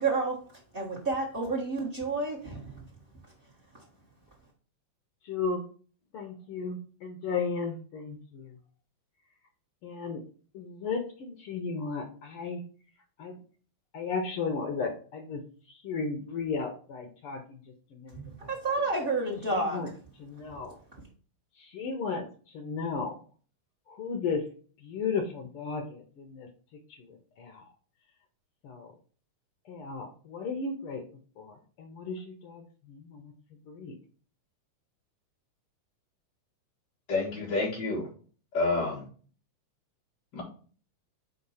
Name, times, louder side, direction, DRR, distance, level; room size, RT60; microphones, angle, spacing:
voice 1, 0.0-2.8 3.7-3.9 18.1-19.9 20.9-21.0, right 3 dB, 45° right, -2 dB, 0.7 m, -31 dB
voice 2, 5.2-5.6 6.1-8.6 9.8-10.2 10.5-12.6 13.2-13.4 13.9-17.6 17.9-18.5 18.8-18.9 19.5-19.9 20.2-20.8 21.6-23.1 23.9-24.4 24.8-26.5 27.0-27.7 28.6-28.9 29.6-31.0 31.4-33.9, left 5 dB, 85° left, 5 dB, 1.2 m, -35 dB
voice 3, 37.1-38.1 38.5-39.1 40.3-40.4, left 3 dB, 40° left, -6 dB, 2.0 m, -28 dB
5.0 x 4.2 x 5.6 m, 0.42 s
omnidirectional pair, 3.6 m